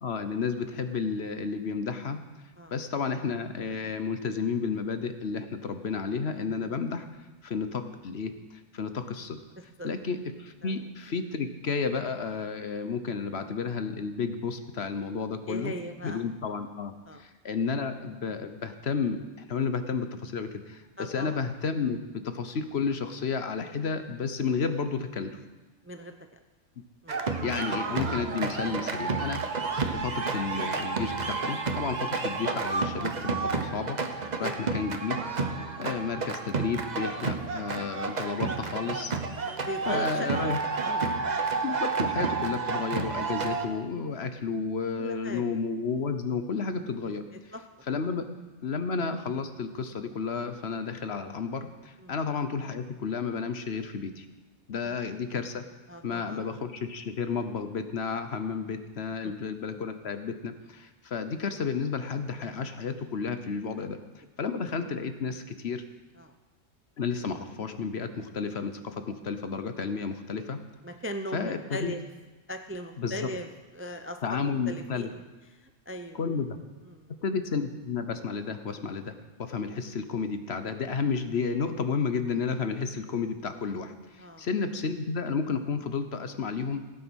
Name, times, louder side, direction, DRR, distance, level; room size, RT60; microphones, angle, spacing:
voice 1, 0.0-2.2 2.7-7.1 7.4-8.3 8.7-9.4 9.8-15.7 16.0-16.9 17.2-25.4 27.4-34.0 34.4-35.2 35.8-39.1 39.9-40.6 41.6-47.2 47.9-48.2 48.6-54.2 54.7-55.6 56.0-64.0 64.4-65.8 67.0-70.6 71.3-71.9 73.0-73.2 74.2-75.1 76.2-76.6 77.2-86.8, left 5 dB, 55° left, 9 dB, 1.1 m, -32 dB
voice 2, 15.5-16.3 17.1-17.2 21.0-21.4 25.8-26.1 27.0-27.2 34.4-34.6 35.6-35.8 39.7-40.5 40.8-41.2 45.0-45.6 47.5-47.6 52.0-52.1 54.8-55.2 55.9-56.4 59.2-59.3 66.2-66.3 70.8-72.0 72.5-73.5 73.7-75.2 75.5-76.2 76.8-77.2 84.2-84.5, equal, 15° right, 6 dB, 0.5 m, -39 dB
sound 1, 27.1-43.7, right 4 dB, 35° right, 1.0 m, -30 dB
16.5 x 9.1 x 6.3 m, 1.2 s
omnidirectional pair, 1.3 m